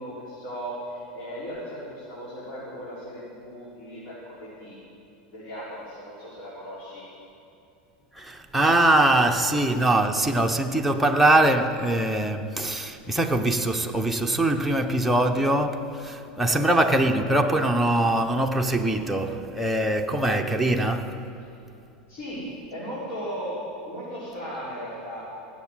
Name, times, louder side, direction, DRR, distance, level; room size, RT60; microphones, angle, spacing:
voice 1, 0.0-4.8 5.3-7.0 16.4-16.7 22.1-23.6 23.8-25.2, equal, 50° left, 4.8 m, -37 dB
voice 2, 8.1-21.2, right 1 dB, ahead, 1.1 m, -22 dB
17.5 x 7.4 x 9.3 m
hypercardioid pair, 105°, 5 cm